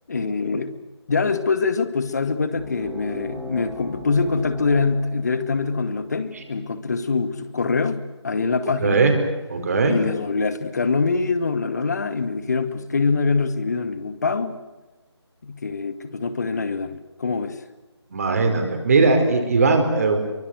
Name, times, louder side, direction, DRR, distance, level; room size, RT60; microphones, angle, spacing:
voice 1, 0.1-0.7 1.1-9.0 9.8-14.6 15.4-17.6, left 4 dB, 40° left, 12 dB, 1.9 m, -24 dB
sound 1, 2.5-7.6, right 1 dB, 5° right, 2.1 m, -40 dB
voice 2, 8.8-9.1 9.5-9.9 18.1-20.2, right 4 dB, 35° right, 5 dB, 4.8 m, -19 dB
26.5 x 24.0 x 8.0 m, 1.1 s
figure-of-eight pair, 160°, 14 cm